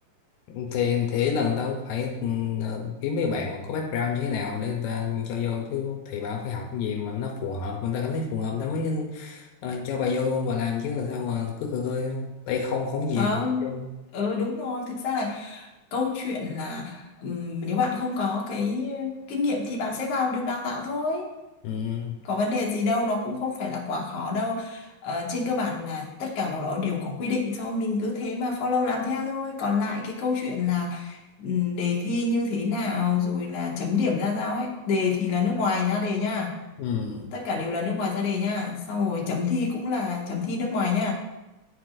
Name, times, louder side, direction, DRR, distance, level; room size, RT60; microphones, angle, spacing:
voice 1, 0.5-13.9 21.6-22.2 36.8-37.3, left 6 dB, 85° left, 2 dB, 2.0 m, -28 dB
voice 2, 13.2-13.7 14.1-21.3 22.2-36.6 37.3-41.1, left 4 dB, 60° left, -1 dB, 1.7 m, -27 dB
9.7 x 4.6 x 2.5 m, 1.0 s
omnidirectional pair, 3.4 m